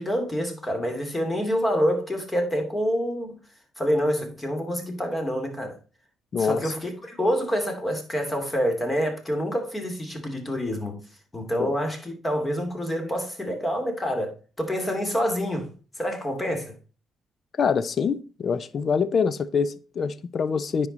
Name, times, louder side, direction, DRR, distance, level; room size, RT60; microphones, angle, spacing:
voice 1, 0.0-3.4 3.8-5.8 6.4-11.0 11.3-16.7, equal, 20° left, 2.7 m, -27 dB
voice 2, 6.3-6.7 11.6-11.8 17.6-20.9, left 6 dB, 50° left, 0.6 m, -25 dB
9.9 x 4.8 x 4.1 m
cardioid pair, 90°, 0 cm